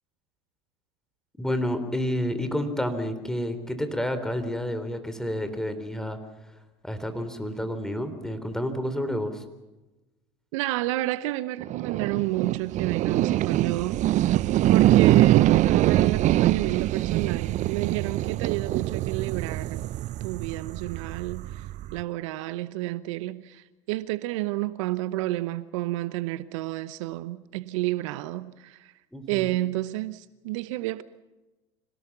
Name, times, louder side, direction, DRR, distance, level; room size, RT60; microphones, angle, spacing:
voice 1, 1.4-6.2 6.8-9.4 29.1-29.5, equal, 5° left, 3.7 m, -29 dB
voice 2, 10.5-14.4 14.7-19.9 20.2-28.9 29.3-31.0, right 17 dB, 70° right, 0.9 m, -30 dB
sound 1, 11.6-22.0, right 14 dB, 45° right, 0.7 m, -23 dB
26.0 x 18.5 x 7.3 m
hypercardioid pair, 80°, 17 cm